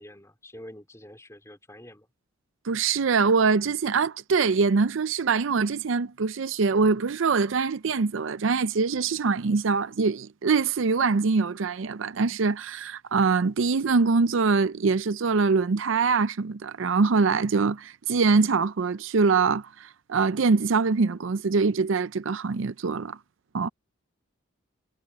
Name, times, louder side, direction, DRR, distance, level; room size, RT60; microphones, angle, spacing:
voice 1, 0.0-2.1, left 1 dB, 15° left, 3.7 m, -46 dB
voice 2, 2.7-23.2 23.5-23.7, right 4 dB, 70° right, 0.5 m, -23 dB
head